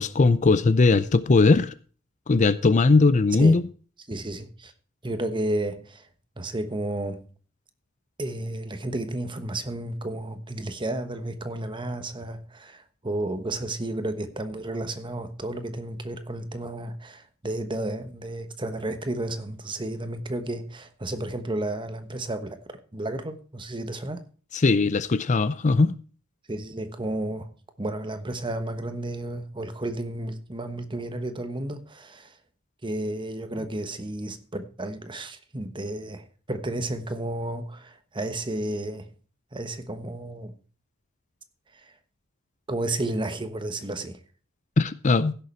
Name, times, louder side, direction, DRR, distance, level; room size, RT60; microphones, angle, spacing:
voice 1, 0.0-1.7 2.3-3.6 24.5-26.0 44.8-45.4, left 3 dB, 35° left, 0.5 m, -19 dB
voice 2, 4.1-4.7 5.0-6.1 6.4-7.2 8.2-22.6 22.9-24.2 26.5-27.5 27.8-32.3 32.8-39.1 39.5-40.5 42.7-44.2, right 1 dB, 25° right, 1.2 m, -32 dB
16.0 x 6.8 x 4.5 m
head